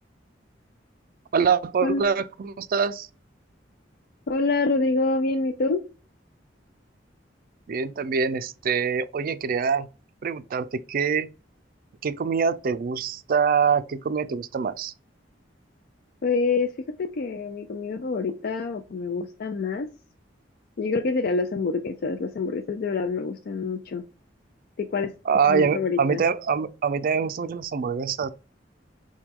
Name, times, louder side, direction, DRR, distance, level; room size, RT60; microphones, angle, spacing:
voice 1, 1.3-3.1 7.7-9.9 10.2-11.3 12.0-14.9 25.3-28.3, right 6 dB, 50° right, 0.4 m, -24 dB
voice 2, 4.3-5.8 16.2-16.7 17.0-19.9 20.8-24.0 24.8-25.1 25.5-26.2, left 3 dB, 55° left, 0.4 m, -26 dB
5.8 x 2.2 x 3.6 m
head